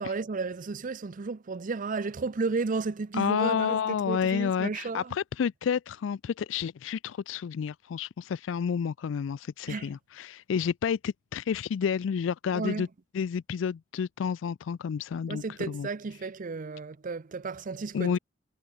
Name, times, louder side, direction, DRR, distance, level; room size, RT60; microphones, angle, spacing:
voice 1, 0.0-3.8 4.1-5.1 9.7-9.9 12.5-12.8 15.3-18.2, right 4 dB, 45° right, 0.5 m, -33 dB
voice 2, 3.1-12.9 13.1-15.9 17.9-18.2, left 7 dB, 80° left, 0.4 m, -30 dB
head